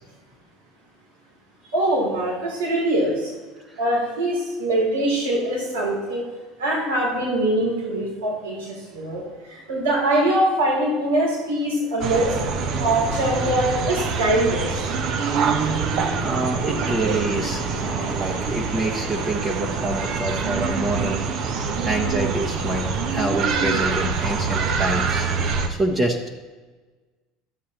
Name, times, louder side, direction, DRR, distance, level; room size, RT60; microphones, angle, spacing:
voice 1, 1.7-3.3 3.8-6.2 6.6-12.4 12.8-14.9, right 1 dB, 85° right, -4 dB, 3.0 m, -23 dB
sound 1, 12.0-25.7, right 5 dB, 55° right, 0.9 m, -25 dB
voice 2, 16.2-26.3, right 2 dB, 25° right, -1 dB, 1.1 m, -27 dB
12.0 x 7.5 x 2.9 m, 1.3 s
hypercardioid pair, 75°, 0 cm